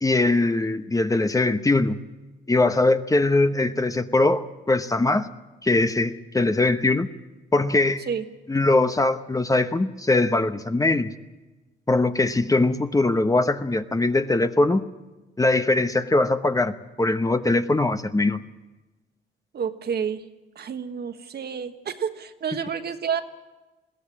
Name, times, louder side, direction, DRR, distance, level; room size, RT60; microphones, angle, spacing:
voice 1, 0.0-2.0 2.5-5.3 5.6-7.1 7.5-8.1 8.5-11.1 11.9-14.8 15.4-18.4, left 2 dB, 15° left, 9 dB, 1.0 m, -21 dB
voice 2, 19.5-20.2 20.5-23.2, right 7 dB, 55° right, 8 dB, 1.5 m, -29 dB
21.0 x 16.0 x 8.7 m, 1.1 s
cardioid pair, 90°, 20 cm